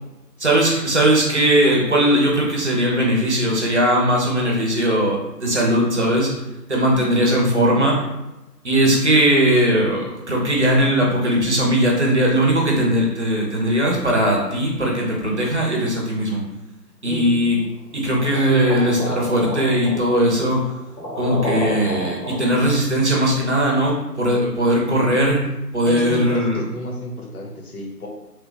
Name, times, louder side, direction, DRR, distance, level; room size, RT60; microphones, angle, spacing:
voice 1, 0.4-6.3 6.7-8.0 8.6-16.4 17.0-17.6 17.9-20.6 21.2-25.4 25.7-26.6, right 1 dB, 45° right, -2 dB, 0.7 m, -19 dB
voice 2, 17.0-17.3 18.5-18.7 25.8-28.1, equal, 60° left, 0 dB, 0.9 m, -30 dB
sound 1, 18.2-22.7, equal, 85° left, 1.2 m, -30 dB
3.1 x 2.1 x 3.2 m, 0.98 s
figure-of-eight pair, 155°, 49 cm